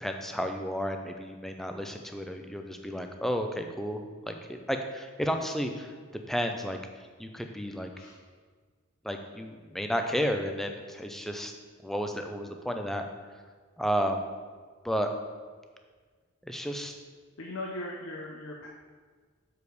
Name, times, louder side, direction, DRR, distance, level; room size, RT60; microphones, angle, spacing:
voice 1, 0.0-5.9 6.3-6.8 7.2-7.9 9.0-11.5 11.8-13.0 13.8-14.2 14.8-15.1 16.4-16.9, equal, ahead, 5 dB, 0.4 m, -32 dB
voice 2, 17.4-18.7, left 1 dB, 85° left, -2 dB, 0.8 m, -38 dB
6.9 x 4.9 x 4.7 m, 1.5 s
head